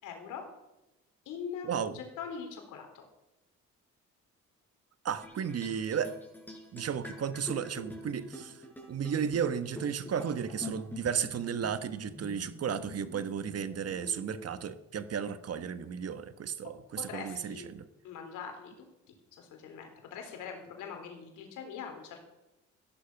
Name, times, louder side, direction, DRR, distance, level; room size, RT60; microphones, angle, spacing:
voice 1, 0.0-0.4 1.3-1.7 1.9-3.0 17.0-17.7 18.0-18.9 19.4-22.2, left 6 dB, 90° left, 4 dB, 3.6 m, -42 dB
voice 2, 1.6-2.0 5.0-6.2 6.7-8.6 8.9-17.9, right 7 dB, 55° right, 12 dB, 1.2 m, -34 dB
sound 1, 5.2-14.7, left 1 dB, 5° left, 5.4 m, -46 dB
15.0 x 11.5 x 6.0 m, 0.96 s
cardioid pair, 90°, 30 cm